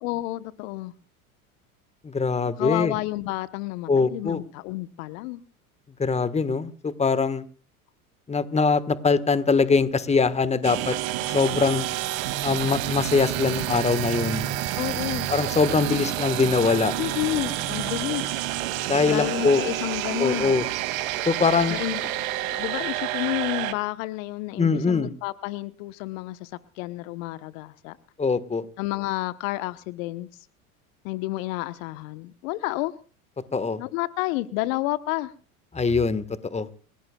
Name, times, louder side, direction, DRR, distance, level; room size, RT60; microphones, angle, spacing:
voice 1, 0.0-0.9 2.6-5.4 14.8-15.3 17.0-18.4 19.1-20.5 21.7-22.1 22.5-26.5 26.8-28.0 28.8-30.3 31.0-32.9 33.8-35.3, left 18 dB, 65° left, 14 dB, 1.1 m, -30 dB
voice 2, 2.0-2.9 3.9-4.4 6.0-7.4 8.3-11.0 11.3-11.9 12.4-14.5 15.3-16.9 18.8-19.6 20.2-20.6 21.2-21.8 24.6-25.1 28.2-28.6 33.5-33.8 35.7-36.2 36.5-36.7, left 4 dB, 15° left, 14 dB, 1.4 m, -22 dB
sound 1, 10.6-23.7, right 14 dB, 70° right, 2.4 m, -29 dB
29.5 x 17.0 x 2.3 m, 0.38 s
hypercardioid pair, 80°, 44 cm